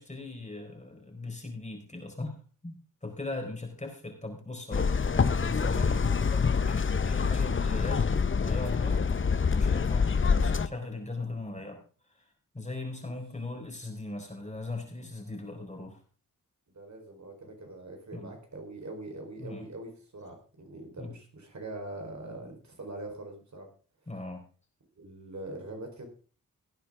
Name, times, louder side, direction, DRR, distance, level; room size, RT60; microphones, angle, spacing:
voice 1, 0.0-2.4 2.6-9.0 9.5-11.8 12.1-12.3 12.5-16.0 18.1-18.3 19.4-19.7 21.0-21.2 24.1-24.4, left 2 dB, 20° left, 3 dB, 4.3 m, -39 dB
sound 1, 4.7-10.7, left 5 dB, 35° left, 0.8 m, -26 dB
voice 2, 16.7-23.7 24.9-26.0, right 2 dB, 55° right, 3 dB, 4.2 m, -43 dB
17.5 x 9.5 x 3.7 m, 0.39 s
wide cardioid pair, 85°, 34 cm